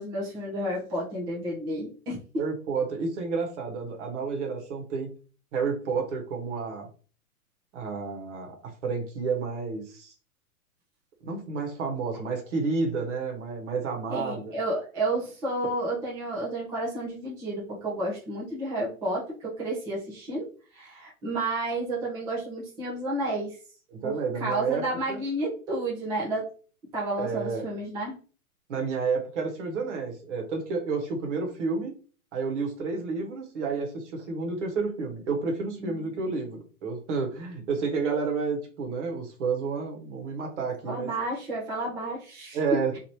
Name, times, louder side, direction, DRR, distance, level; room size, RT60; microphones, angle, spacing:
voice 1, 0.0-2.2 14.1-20.5 20.7-23.6 24.0-26.5 26.9-28.2 35.8-35.9 40.9-42.6, right 1 dB, 10° right, -5 dB, 0.6 m, -31 dB
voice 2, 2.4-5.1 5.5-6.9 7.7-10.1 11.2-14.6 23.9-24.8 25.1-25.2 27.2-27.6 28.7-31.9 32.3-41.1 42.5-43.0, right 4 dB, 50° right, 3 dB, 1.2 m, -30 dB
3.0 x 2.8 x 2.8 m, 0.38 s
hypercardioid pair, 140°, 44 cm